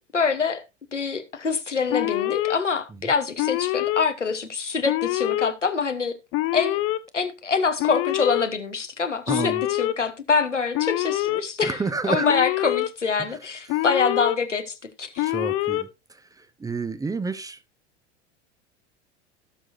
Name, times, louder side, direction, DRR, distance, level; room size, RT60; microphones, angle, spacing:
voice 1, 0.1-0.6 0.9-6.2 6.5-6.8 7.1-15.4, left 5 dB, 85° left, 1.2 m, -25 dB
Alarm, 1.9-2.6 3.4-4.0 4.8-5.5 6.3-7.0 7.8-8.5 9.3-9.9 10.7-11.4 12.2-12.9 13.7-14.4 15.2-15.8, left 16 dB, 40° left, 0.8 m, -25 dB
voice 2, 9.3-9.6 11.6-12.3 15.2-15.9 16.6-17.6, right 4 dB, 10° right, 0.7 m, -28 dB
17.5 x 6.3 x 2.6 m
figure-of-eight pair, 80°, 36 cm